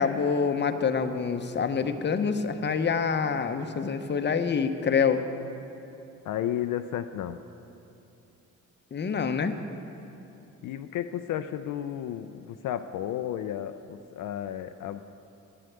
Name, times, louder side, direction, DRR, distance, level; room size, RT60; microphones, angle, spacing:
voice 1, 0.0-5.2 8.9-9.5, left 6 dB, 35° left, 8 dB, 0.8 m, -26 dB
voice 2, 6.2-7.4 10.6-15.0, left 11 dB, 70° left, 9 dB, 0.5 m, -33 dB
10.0 x 7.7 x 9.3 m, 2.8 s
cardioid pair, 85°, 33 cm